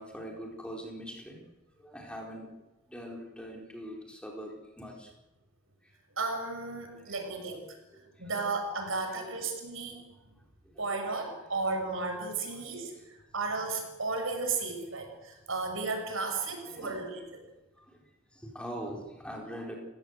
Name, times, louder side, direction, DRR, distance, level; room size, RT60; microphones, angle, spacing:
voice 1, 0.0-1.4 1.8-2.5 2.9-5.1 5.8-5.9 6.8-7.5 7.9-8.3 9.1-9.4 10.1-10.2 10.6-11.3 12.4-12.7 16.5-17.1 17.8-18.0 18.3-19.8, equal, 5° left, 0 dB, 4.1 m, -43 dB
voice 2, 6.2-7.6 8.2-10.0 10.8-17.4, right 3 dB, 85° right, 4 dB, 6.5 m, -34 dB
30.0 x 16.5 x 8.0 m, 1.1 s
head